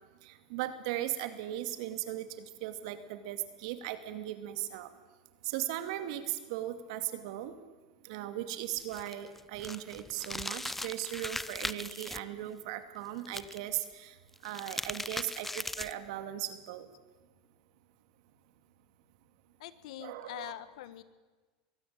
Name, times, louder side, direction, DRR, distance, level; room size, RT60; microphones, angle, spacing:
voice 1, 0.2-4.9 5.4-7.5 8.0-14.1 14.4-16.9 20.0-20.5, right 13 dB, 70° right, 10 dB, 2.3 m, -38 dB
sound 1, 8.8-12.2 13.2-13.8 14.3-16.1, left 2 dB, 5° left, 0.6 m, -39 dB
voice 2, 19.6-21.0, left 13 dB, 75° left, 14 dB, 1.5 m, -44 dB
23.0 x 16.5 x 8.8 m, 1.3 s
supercardioid pair, 125°, 4 cm